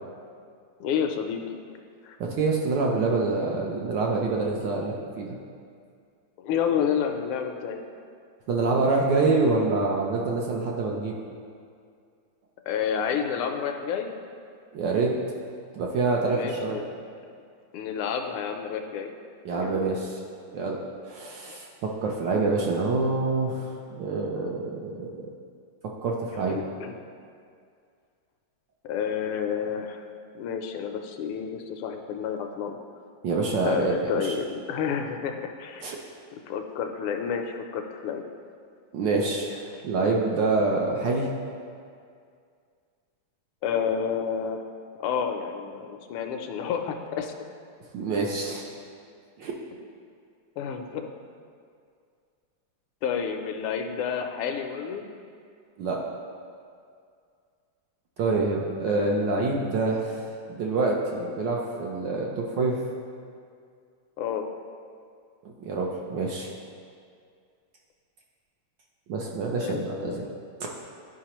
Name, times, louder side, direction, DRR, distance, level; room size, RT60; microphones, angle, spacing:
voice 1, 0.8-1.4 2.0-2.2 6.4-7.8 12.7-14.1 16.3-16.9 17.7-19.1 19.5-20.0 21.5-21.6 22.3-22.7 26.3-27.0 28.8-30.1 30.3-32.8 33.6-35.9 36.3-38.2 43.6-44.7 45.0-47.3 50.6-51.1 53.0-55.0 58.9-59.5 59.8-59.9 64.2-64.5 69.6-70.4, left 7 dB, 80° left, 5 dB, 1.5 m, -30 dB
voice 2, 2.2-5.4 8.5-11.1 14.7-15.1 15.7-16.8 19.4-20.2 20.5-20.8 21.1-23.7 24.0-25.3 26.0-26.6 33.2-33.9 34.2-34.3 35.8-36.0 38.9-41.3 47.9-48.7 49.4-49.5 55.8-56.0 58.2-60.2 60.5-62.8 65.4-66.5 69.1-70.2, right 3 dB, 70° right, -1 dB, 1.1 m, -26 dB
11.5 x 4.9 x 2.9 m, 2.2 s
omnidirectional pair, 2.4 m